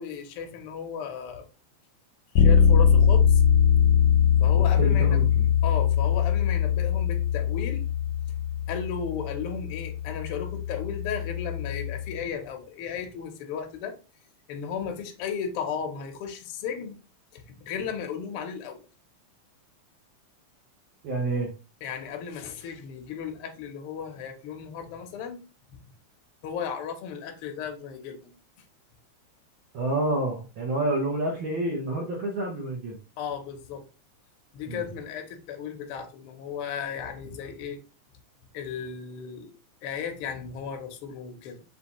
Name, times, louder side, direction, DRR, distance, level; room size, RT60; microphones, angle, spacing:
voice 1, 0.0-1.4 2.3-3.4 3.8-4.0 4.4-5.2 5.6-7.8 8.7-13.9 14.5-17.0 17.3-18.8 21.8-25.4 26.4-28.3 33.2-33.8 34.5-37.8 38.5-39.5 39.8-41.6, left 7 dB, 70° left, 1.4 m, -35 dB
Bass guitar, 2.4-12.2, left 7 dB, 90° left, 2.0 m, -22 dB
voice 2, 4.5-5.5 21.0-21.5 29.7-33.0 34.7-34.8, right 2 dB, 65° right, 1.2 m, -29 dB
5.4 x 2.8 x 3.0 m
omnidirectional pair, 3.4 m